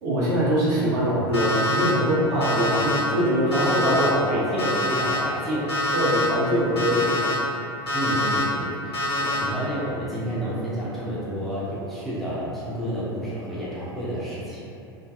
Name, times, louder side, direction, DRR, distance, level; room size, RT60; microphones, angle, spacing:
voice 1, 0.0-4.5 5.9-7.4 9.1-9.4, equal, 50° right, -8 dB, 0.8 m, -23 dB
Alarm, 1.3-1.9 2.4-3.0 3.5-4.1 4.6-5.2 5.7-6.3 6.8-7.3 7.9-8.4 8.9-9.4, left 1 dB, 80° left, 0.8 m, -25 dB
voice 2, 2.3-2.9 3.5-5.7 7.9-9.0 9.4-14.7, equal, ahead, -10 dB, 0.5 m, -29 dB
2.5 x 2.2 x 2.3 m, 2.6 s
figure-of-eight pair, 85°, 13 cm